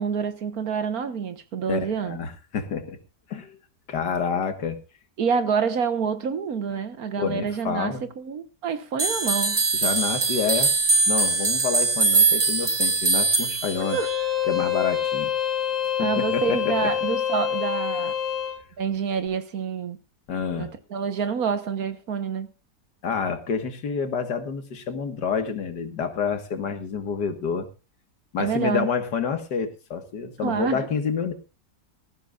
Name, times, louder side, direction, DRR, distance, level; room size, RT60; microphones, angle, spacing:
voice 1, 0.0-2.2 5.2-9.6 13.9-14.1 16.0-18.1 18.8-20.0 20.6-22.5 28.4-28.9 30.4-30.9, right 6 dB, 60° right, 1.6 m, -27 dB
voice 2, 1.7-3.0 3.3-3.6 3.9-4.8 7.2-8.0 9.7-10.7 11.1-14.0 14.5-15.3 16.0-16.9 20.3-20.7 23.0-27.7 28.3-31.3, left 6 dB, 75° left, 2.1 m, -28 dB
sound 1, 9.0-14.2, right 4 dB, 30° right, 1.7 m, -22 dB
Bowed string instrument, 13.8-18.6, left 10 dB, ahead, 6.7 m, -26 dB
19.0 x 14.5 x 2.4 m
omnidirectional pair, 1.9 m